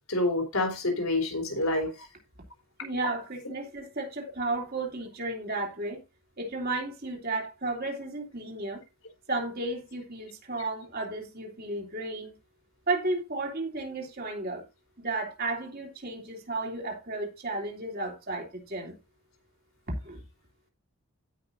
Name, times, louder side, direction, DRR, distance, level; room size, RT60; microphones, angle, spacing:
voice 1, 0.1-2.1, left 2 dB, 75° left, 3.7 m, -27 dB
voice 2, 2.8-6.0 6.4-8.8 9.3-12.4 12.9-14.7 15.0-19.0 20.0-20.2, right 2 dB, 45° right, 3.4 m, -33 dB
16.5 x 5.8 x 2.7 m
head